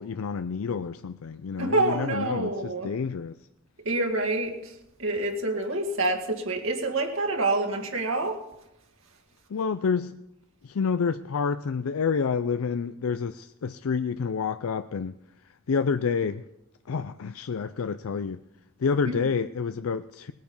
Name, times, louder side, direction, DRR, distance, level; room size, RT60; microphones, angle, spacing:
voice 1, 0.0-3.4 9.5-10.2 10.6-15.2 15.7-16.4 16.9-18.4 18.8-20.3, left 5 dB, 90° left, 0.5 m, -28 dB
voice 2, 1.6-2.9 3.8-8.4 19.0-19.2, right 2 dB, 70° right, 2.3 m, -27 dB
19.5 x 9.1 x 5.4 m
head